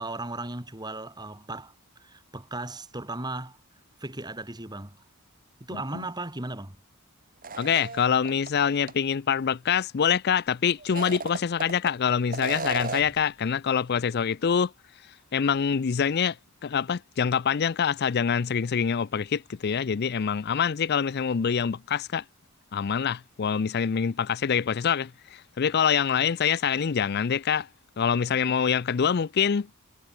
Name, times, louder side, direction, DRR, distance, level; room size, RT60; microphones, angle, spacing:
voice 1, 0.0-1.7 2.0-3.6 4.0-5.0 5.7-6.8, right 2 dB, 20° right, 3.4 m, -36 dB
voice 2, 5.7-6.0 7.6-14.7 15.3-16.4 16.6-22.2 22.7-27.7 28.0-29.7, left 7 dB, 45° left, 0.4 m, -25 dB
sound 1, 7.4-8.5 8.9-9.0 10.8-11.9 12.3-13.2, right 4 dB, 40° right, 3.9 m, -34 dB
head